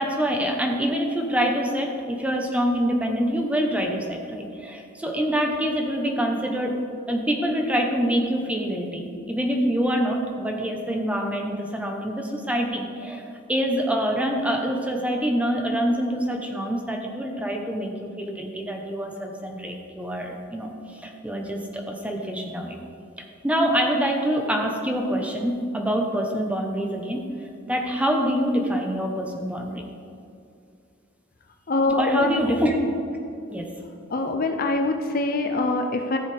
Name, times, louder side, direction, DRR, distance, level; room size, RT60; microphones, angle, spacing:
voice 1, 0.0-6.8 7.1-22.8 23.4-29.8 32.0-32.8 33.5-33.7, equal, 5° right, 2 dB, 0.9 m, -25 dB
voice 2, 31.7-32.4 34.1-36.2, left 2 dB, 45° left, 5 dB, 0.6 m, -24 dB
14.5 x 7.2 x 3.4 m, 2.4 s
head